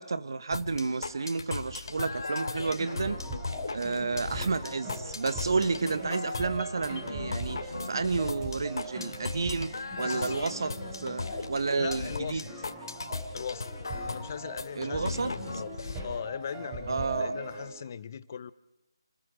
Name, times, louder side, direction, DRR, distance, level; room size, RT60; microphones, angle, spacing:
voice 1, 0.0-3.2 3.7-10.7 11.0-12.4 14.7-15.3 16.9-17.3, right 4 dB, 55° right, 1.5 m, -31 dB
sound 1, 0.5-16.0, left 3 dB, 55° left, 2.8 m, -37 dB
sound 2, 2.5-17.8, right 1 dB, 20° right, 7.1 m, -41 dB
voice 2, 10.0-10.3 11.8-12.4 13.3-13.7 14.0-18.5, left 7 dB, 35° left, 0.9 m, -39 dB
29.5 x 21.0 x 5.2 m
figure-of-eight pair, 155°, 3 cm